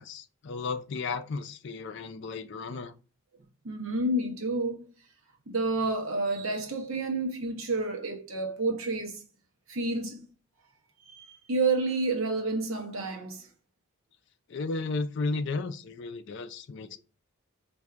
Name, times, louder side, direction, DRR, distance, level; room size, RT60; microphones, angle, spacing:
voice 1, 0.0-2.9 14.5-17.0, left 3 dB, 55° left, 0.4 m, -34 dB
voice 2, 3.6-4.9 5.5-9.2 9.7-10.3 11.1-13.5, right 2 dB, 70° right, 0.9 m, -30 dB
4.4 x 2.6 x 2.4 m
head